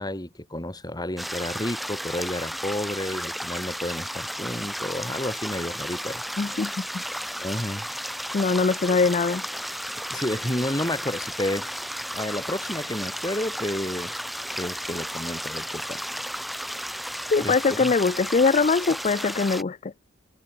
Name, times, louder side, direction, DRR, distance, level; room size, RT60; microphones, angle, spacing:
voice 1, 0.0-6.2 6.5-6.7 7.4-7.9 8.9-9.0 10.1-11.7 12.1-14.1 14.6-16.1 17.4-17.9, left 1 dB, 20° left, 4.6 m, -31 dB
sound 1, 1.2-19.6, equal, ahead, 1.2 m, -33 dB
voice 2, 6.4-7.0 8.3-9.4 17.3-19.9, left 4 dB, 35° left, 0.4 m, -22 dB
head